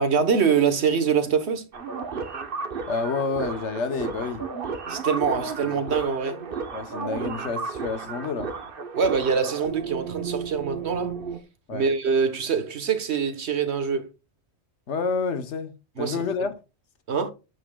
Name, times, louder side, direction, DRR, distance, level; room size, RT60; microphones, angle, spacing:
voice 1, 0.0-1.7 4.9-6.4 8.9-11.2 11.7-14.1 16.0-16.5 17.1-17.3, right 6 dB, 70° right, 1.4 m, -24 dB
sound 1, 1.7-11.4, right 5 dB, 55° right, 1.2 m, -33 dB
voice 2, 2.9-4.4 5.6-5.8 6.7-8.5 11.7-11.9 14.9-16.5, left 4 dB, 85° left, 1.3 m, -29 dB
9.2 x 8.0 x 2.3 m
omnidirectional pair, 1.2 m